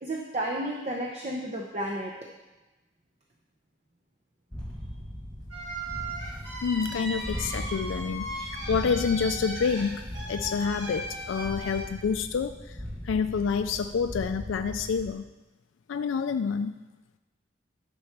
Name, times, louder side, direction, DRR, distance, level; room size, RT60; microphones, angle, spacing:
voice 1, 0.0-2.1, right 1 dB, 35° right, -2 dB, 0.8 m, -32 dB
sound 1, 4.5-15.1, equal, 5° left, 1.9 m, -39 dB
sound 2, 5.5-11.8, right 1 dB, 70° right, 3.2 m, -37 dB
voice 2, 6.6-12.8 13.0-15.2 15.9-16.8, left 6 dB, 80° left, 8 dB, 0.3 m, -28 dB
10.5 x 4.4 x 5.9 m, 1.1 s
head